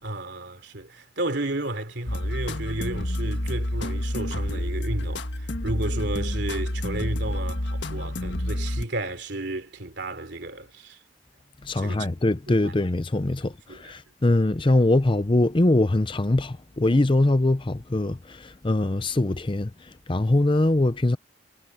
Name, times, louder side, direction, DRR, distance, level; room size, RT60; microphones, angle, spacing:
voice 1, 0.0-11.0 11.7-12.1 12.5-12.7 13.4-13.9, right 2 dB, 65° right, 3.3 m, -33 dB
sound 1, 2.1-8.8, left 1 dB, 70° left, 1.6 m, -29 dB
voice 2, 11.6-19.7 20.1-21.2, left 2 dB, 25° left, 0.6 m, -22 dB
head